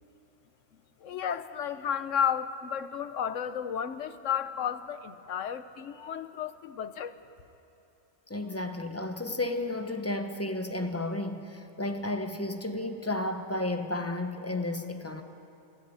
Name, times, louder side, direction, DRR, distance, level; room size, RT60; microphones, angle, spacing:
voice 1, 1.0-7.1, left 8 dB, 75° left, 12 dB, 1.1 m, -32 dB
voice 2, 8.3-15.2, left 2 dB, 10° left, 6 dB, 1.0 m, -32 dB
24.0 x 13.5 x 9.4 m, 2.8 s
omnidirectional pair, 1.3 m